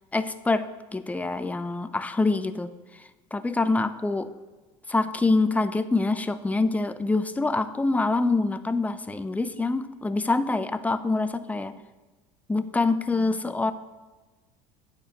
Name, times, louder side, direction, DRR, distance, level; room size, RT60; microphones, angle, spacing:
voice 1, 0.1-2.7 3.3-4.3 4.9-11.7 12.5-13.7, left 3 dB, 10° left, 11 dB, 0.5 m, -25 dB
8.9 x 4.6 x 5.8 m, 1.3 s
hypercardioid pair, 80°, 17 cm